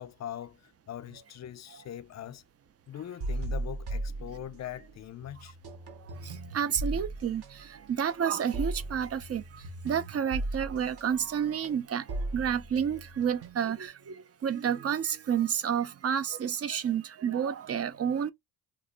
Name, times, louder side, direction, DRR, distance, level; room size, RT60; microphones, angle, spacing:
voice 1, 0.0-2.4 2.9-5.6, left 11 dB, 35° left, 0.4 m, -42 dB
sound 1, 3.2-4.9 5.2-13.9, right 2 dB, 50° right, 1.0 m, -37 dB
voice 2, 6.2-7.4 7.9-9.4 9.8-12.0 12.3-14.2 14.4-18.3, right 8 dB, 30° right, 0.5 m, -30 dB
3.0 x 2.1 x 3.8 m
supercardioid pair, 70°, 50 cm